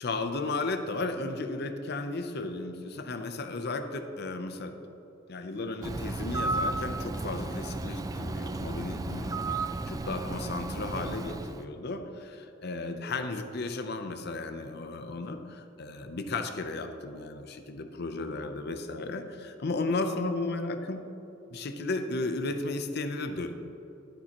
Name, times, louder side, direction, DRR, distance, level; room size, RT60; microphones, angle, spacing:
voice 1, 0.0-4.7 5.3-21.0 21.5-23.6, left 3 dB, 55° left, 8 dB, 0.6 m, -34 dB
Bird, 5.8-11.7, right 2 dB, 20° right, 0.3 m, -33 dB
11.0 x 10.0 x 3.0 m, 3.0 s
head